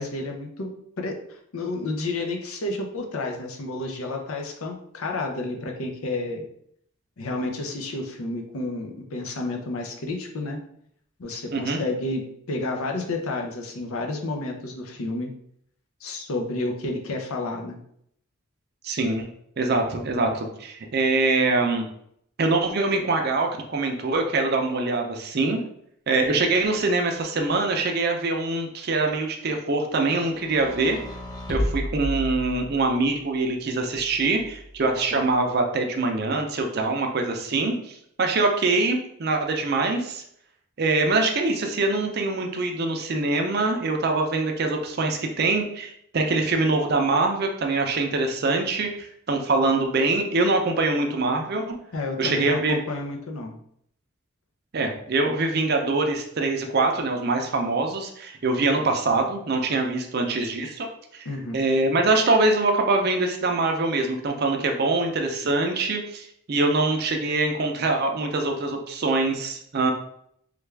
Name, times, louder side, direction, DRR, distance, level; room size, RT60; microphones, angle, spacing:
voice 1, 0.0-6.4 7.2-10.6 11.2-12.2 12.5-15.3 16.0-17.8 51.9-53.6 61.2-61.6, left 2 dB, 75° left, 3 dB, 0.6 m, -30 dB
voice 2, 11.5-11.8 18.8-19.3 19.6-21.8 22.4-25.6 26.1-31.0 31.5-40.2 40.8-51.8 52.2-52.8 54.7-60.9 61.1-61.3 61.5-69.9, right 3 dB, 45° right, 3 dB, 0.5 m, -24 dB
sound 1, 30.3-33.0 33.9-34.9, equal, 20° left, 0.5 m, -32 dB
3.3 x 2.3 x 3.3 m, 0.70 s
head